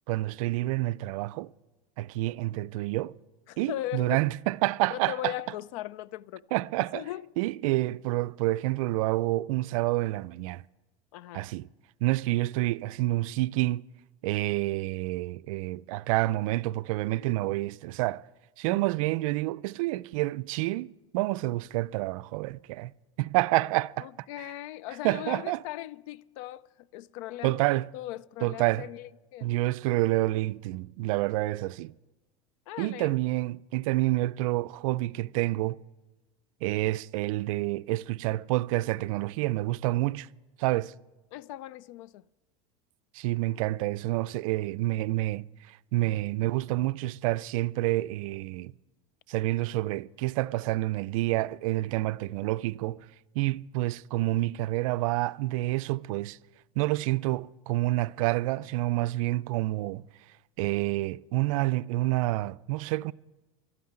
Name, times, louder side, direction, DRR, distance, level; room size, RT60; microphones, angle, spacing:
voice 1, 0.1-1.5 2.0-3.2 3.6-5.3 6.5-7.0 7.4-10.6 11.3-11.7 12.0-13.8 14.2-18.2 18.6-22.9 23.2-24.1 24.4-24.5 25.0-25.6 27.4-27.9 28.4-28.9 29.4-31.9 32.8-35.8 36.6-40.3 40.6-40.9 43.1-48.7 49.3-53.1 53.4-56.4 56.8-60.0 60.6-63.1, right 18 dB, 75° right, 0.4 m, -28 dB
voice 2, 3.5-4.2 4.9-6.5 6.9-7.3 11.1-11.5 18.6-18.9 24.0-29.6 32.7-33.1 41.3-42.2, left 14 dB, 70° left, 0.4 m, -39 dB
12.5 x 9.4 x 8.7 m
supercardioid pair, 135°, 18 cm